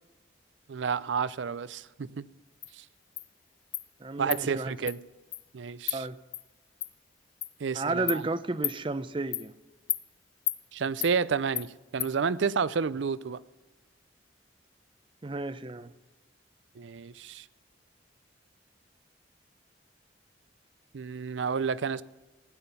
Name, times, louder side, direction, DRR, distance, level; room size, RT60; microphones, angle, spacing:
voice 1, 0.7-2.3 2.8-2.9 4.2-5.0 5.5-6.1 7.6-8.2 10.7-13.4 16.8-17.5 20.9-22.0, right 5 dB, 75° right, 0.5 m, -30 dB
Insect, 2.6-2.7 3.2-3.3 3.7-3.9 4.3-4.4 4.9-5.0 5.3-5.4 5.9-6.0 6.3-6.4 6.8-6.9 7.4-7.5 8.1-8.2 8.6-8.8 9.3-9.5 9.9-10.0 10.5-10.6 11.0-11.1 11.6-11.7 12.0-12.1, left 11 dB, 25° left, 0.3 m, -32 dB
voice 2, 4.0-4.7 5.9-6.2 7.8-9.5 15.2-15.9, right 2 dB, 25° right, 0.5 m, -32 dB
16.0 x 9.7 x 5.6 m
head